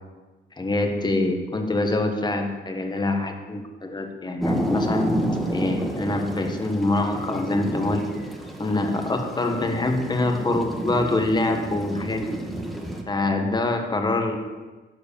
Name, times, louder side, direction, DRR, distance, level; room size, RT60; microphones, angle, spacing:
voice 1, 0.6-5.1 5.5-8.0 8.6-12.2 13.1-14.4, left 2 dB, 20° left, 4 dB, 1.5 m, -25 dB
sound 1, 4.4-13.0, equal, ahead, 1.5 m, -30 dB
12.0 x 5.1 x 6.9 m, 1.3 s
cardioid pair, 90°, 20 cm